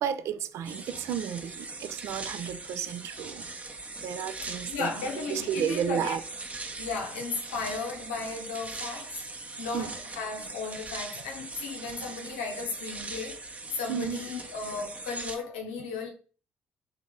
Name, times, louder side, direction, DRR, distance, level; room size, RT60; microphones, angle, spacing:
voice 1, 0.0-3.5 4.0-4.9 5.3-6.2 9.7-9.9 13.9-14.2, right 8 dB, 60° right, 0.4 m, -32 dB
sound 1, 0.6-15.4, right 3 dB, 25° right, 0.8 m, -41 dB
voice 2, 4.7-6.2 6.8-9.2 9.6-13.4 13.7-16.1, left 4 dB, 80° left, 0.8 m, -35 dB
3.4 x 2.8 x 3.6 m
figure-of-eight pair, 45°, 6 cm